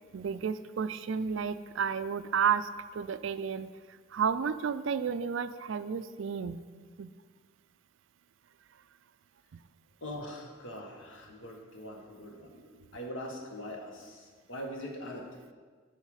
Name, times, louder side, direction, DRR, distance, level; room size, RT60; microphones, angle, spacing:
voice 1, 0.1-3.7 4.1-6.6 7.0-7.1, right 6 dB, 70° right, 13 dB, 0.4 m, -31 dB
voice 2, 10.0-15.2, equal, 70° left, 2 dB, 1.4 m, -42 dB
10.5 x 5.6 x 4.9 m, 1.6 s
head